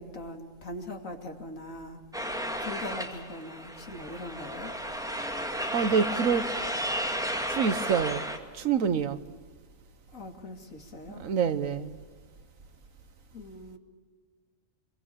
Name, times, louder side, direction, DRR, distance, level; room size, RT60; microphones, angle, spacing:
voice 1, 0.0-2.0 2.6-4.7 10.1-11.2 13.3-13.8, left 1 dB, 75° left, 3.0 m, -41 dB
sound 1, 2.1-8.4, equal, 5° right, 2.1 m, -33 dB
voice 2, 5.7-6.5 7.5-8.2 8.5-9.2 11.1-11.9, right 6 dB, 75° right, 1.5 m, -26 dB
26.0 x 23.0 x 8.7 m
omnidirectional pair, 1.4 m